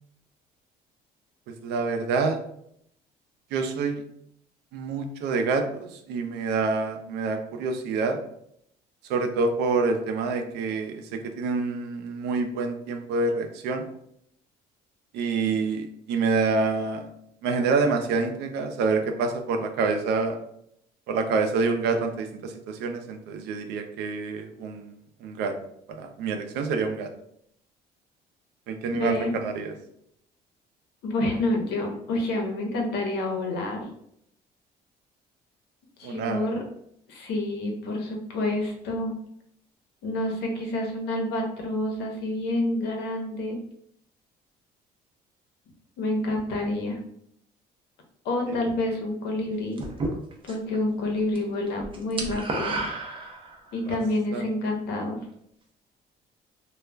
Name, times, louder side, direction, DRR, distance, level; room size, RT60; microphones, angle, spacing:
voice 1, 1.6-2.4 3.5-4.0 4.7-8.2 9.1-13.9 15.1-17.0 17.4-20.4 21.1-24.9 25.2-25.5 26.0-27.1 28.7-29.7 36.0-36.5 53.9-54.0 54.3-54.4, right 4 dB, 85° right, 6 dB, 0.4 m, -27 dB
voice 2, 29.0-29.4 31.0-33.9 36.0-36.6 37.1-39.1 40.0-43.6 46.0-47.0 48.2-49.8 50.4-52.8 53.7-55.2, left 1 dB, 80° left, 2 dB, 0.7 m, -28 dB
sound 1, 49.8-50.8 51.1-51.4 51.7-53.8, right 2 dB, 30° right, 0.5 m, -31 dB
2.3 x 2.1 x 3.2 m, 0.72 s
cardioid pair, 110°, 17 cm